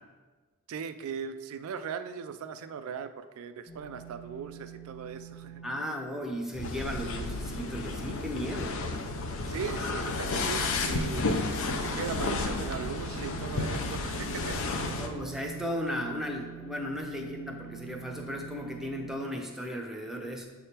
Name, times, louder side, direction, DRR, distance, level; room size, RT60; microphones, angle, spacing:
voice 1, 0.7-5.6 9.5-11.3 11.8-14.6, right 6 dB, 70° right, 10 dB, 0.3 m, -39 dB
sound 1, 3.7-19.1, right 8 dB, 30° left, 1.0 m, -47 dB
voice 2, 5.6-8.8 14.8-20.5, equal, ahead, 2 dB, 0.6 m, -35 dB
sound 2, 6.5-15.1, left 3 dB, 65° left, 0.6 m, -32 dB
7.6 x 3.5 x 4.3 m, 1.3 s
head